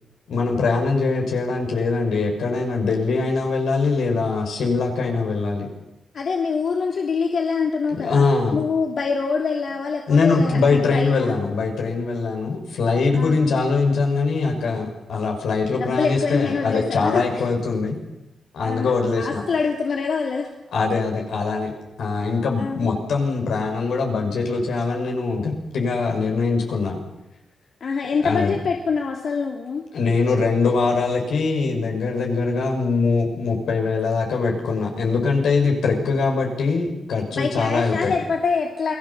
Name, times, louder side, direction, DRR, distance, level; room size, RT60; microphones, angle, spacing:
voice 1, 0.3-5.7 7.9-8.6 10.1-18.0 18.5-19.4 20.7-21.7 22.0-27.0 28.2-28.5 29.9-38.2, left 4 dB, 90° left, 1 dB, 6.2 m, -22 dB
voice 2, 6.1-8.2 8.5-11.3 13.2-13.5 15.8-17.5 18.6-20.5 22.6-22.9 27.8-29.8 37.3-38.9, left 5 dB, 70° left, 1 dB, 2.8 m, -25 dB
28.5 x 19.0 x 7.4 m, 0.97 s
cardioid pair, 80°, 0 cm